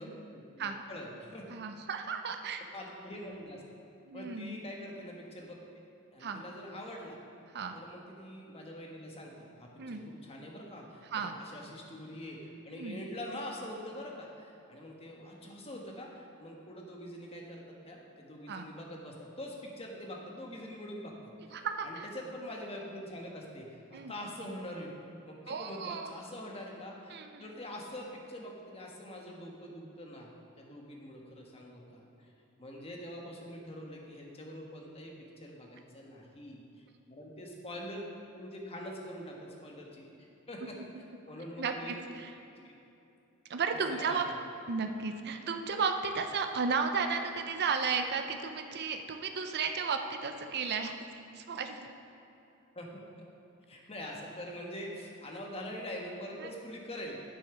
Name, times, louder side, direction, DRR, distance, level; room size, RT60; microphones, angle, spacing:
voice 1, 0.0-1.5 2.7-3.6 4.1-5.8 6.1-7.2 7.7-21.1 21.5-24.9 25.2-30.3 30.6-32.3 32.6-38.1 38.3-40.8 41.3-42.0 42.6-42.8 43.9-44.2 52.7-53.0 53.7-57.2, equal, 25° left, -1 dB, 1.3 m, -44 dB
voice 2, 1.5-2.6 4.0-4.6 6.2-6.4 7.5-7.8 9.8-10.0 11.1-11.4 12.7-13.0 18.5-18.6 21.5-22.1 23.9-24.1 25.5-26.1 27.1-27.5 41.6-42.4 43.5-44.3 44.7-51.0 51.3-51.9 56.4-56.5, right 5 dB, 50° right, 6 dB, 0.6 m, -34 dB
8.6 x 7.1 x 5.9 m, 2.9 s
head